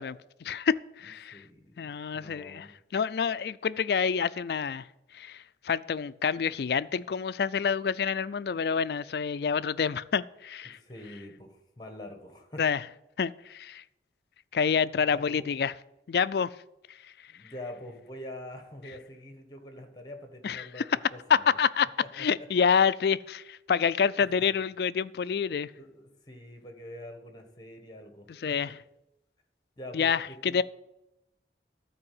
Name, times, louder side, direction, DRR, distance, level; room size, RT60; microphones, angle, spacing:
voice 1, 0.0-1.4 1.8-2.7 2.9-4.9 5.1-10.8 12.6-12.8 13.2-13.8 14.5-15.7 16.1-16.5 20.4-20.8 21.3-21.9 22.1-25.7 28.4-28.7 29.9-30.6, left 6 dB, 60° left, 0.3 m, -27 dB
voice 2, 1.3-2.7 10.6-12.7 15.0-15.5 17.3-21.6 22.0-22.5 24.2-24.4 25.8-28.7 29.8-30.6, left 1 dB, 25° left, 1.4 m, -45 dB
12.5 x 4.7 x 7.7 m
head